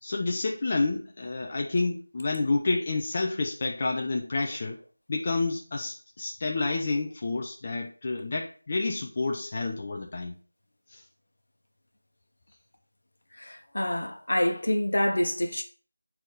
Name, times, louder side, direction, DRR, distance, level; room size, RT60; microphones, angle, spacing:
voice 1, 0.0-4.8 5.1-10.3 10.9-11.0, left 3 dB, 30° left, 0.7 m, -29 dB
voice 2, 13.3-15.6, left 1 dB, 65° left, 1.3 m, -27 dB
6.0 x 4.2 x 4.9 m
figure-of-eight pair, 170°, 0 cm